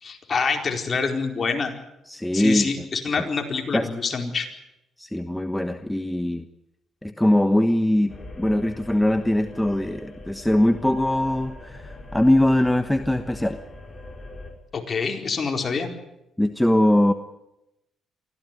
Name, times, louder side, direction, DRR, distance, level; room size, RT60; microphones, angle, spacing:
voice 1, 0.0-1.7 2.3-4.5 14.7-15.9, left 5 dB, 40° left, 3 dB, 4.6 m, -26 dB
voice 2, 2.1-2.9 3.2-3.3 3.7-3.9 5.0-6.4 7.0-13.6 16.4-17.1, left 1 dB, 5° left, 8 dB, 1.2 m, -21 dB
sound 1, 8.1-14.5, left 2 dB, 20° left, 5.3 m, -41 dB
24.5 x 15.5 x 9.3 m, 0.88 s
cardioid pair, 90°, 0 cm